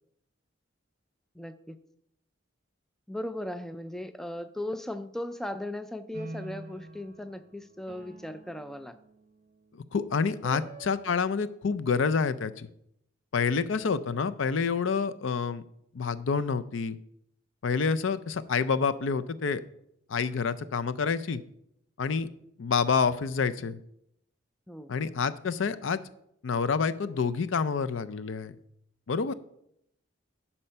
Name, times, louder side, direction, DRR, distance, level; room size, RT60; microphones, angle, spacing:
voice 1, 1.3-1.8 3.1-9.0 10.4-10.7 24.7-24.9, left 1 dB, ahead, 10 dB, 0.3 m, -37 dB
sound 1, 6.1-11.2, right 2 dB, 40° right, 0.9 m, -47 dB
voice 2, 9.7-12.7 13.3-15.6 15.9-17.0 17.6-19.6 20.1-21.4 22.0-22.3 22.6-23.8 24.9-26.0 26.4-28.6 29.1-29.3, left 5 dB, 80° left, 14 dB, 0.5 m, -28 dB
11.0 x 4.4 x 5.6 m, 0.75 s
head